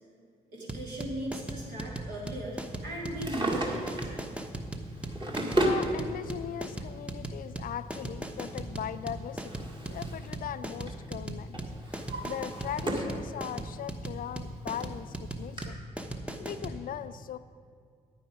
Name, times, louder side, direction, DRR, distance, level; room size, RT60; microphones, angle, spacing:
voice 1, 0.5-4.2, right 1 dB, 60° right, -4 dB, 2.9 m, -38 dB
sound 1, 0.7-16.8, right 1 dB, 5° right, 1.0 m, -37 dB
Drawer open or close, 3.0-4.2 4.9-5.9 6.9-7.0 8.8-10.4 10.6-11.0 11.5-13.2 13.6-13.7 14.5-14.6 14.8-14.9 15.6-15.7, right 1 dB, 25° right, 1.8 m, -33 dB
voice 2, 5.6-11.6 11.8-15.8 16.4-17.4, left 10 dB, 45° left, 14 dB, 0.4 m, -39 dB
9.6 x 9.4 x 5.0 m, 2.1 s
figure-of-eight pair, 40°, 20 cm